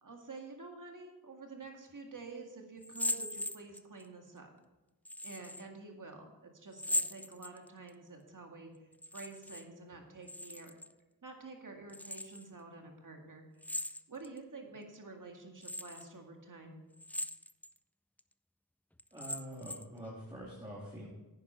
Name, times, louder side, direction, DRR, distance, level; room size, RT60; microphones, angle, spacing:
voice 1, 0.0-4.5 5.2-10.7 11.2-13.5 14.1-16.8, right 3 dB, 55° right, 3 dB, 2.1 m, -49 dB
sound 1, 2.8-4.1 5.1-5.7 6.7-7.9 8.9-9.7 9.9-10.9 11.9-12.5 13.6-14.4 14.9-15.0 15.6-16.1 16.9-17.7 18.2-18.3 19.0-20.0, left 1 dB, 5° left, 0.4 m, -39 dB
voice 2, 19.1-21.1, equal, 15° right, -6 dB, 2.9 m, -45 dB
10.0 x 9.8 x 4.4 m, 1.1 s
wide cardioid pair, 70°, 38 cm